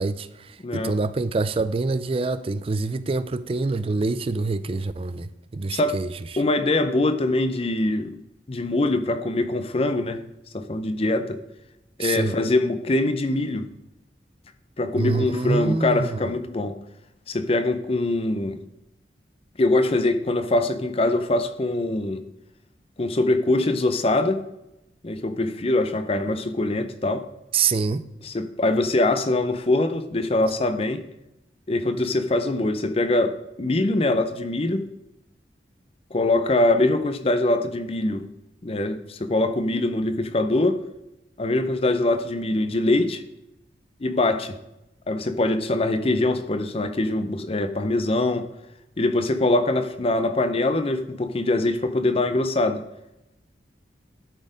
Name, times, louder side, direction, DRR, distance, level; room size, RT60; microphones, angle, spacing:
voice 1, 0.0-6.2 12.0-12.4 14.9-16.3 27.5-28.1, right 3 dB, 30° right, 0.4 m, -26 dB
voice 2, 0.6-0.9 5.7-6.0 6.4-8.2 8.5-10.2 10.5-11.4 12.0-13.7 14.8-16.8 17.3-18.6 19.6-22.2 23.0-24.4 25.0-27.3 28.2-31.0 31.7-34.9 36.1-38.3 38.6-40.8 41.4-43.2 44.0-44.6 45.1-48.5 49.0-52.8, left 2 dB, 35° left, 0.6 m, -23 dB
11.5 x 4.3 x 5.1 m
head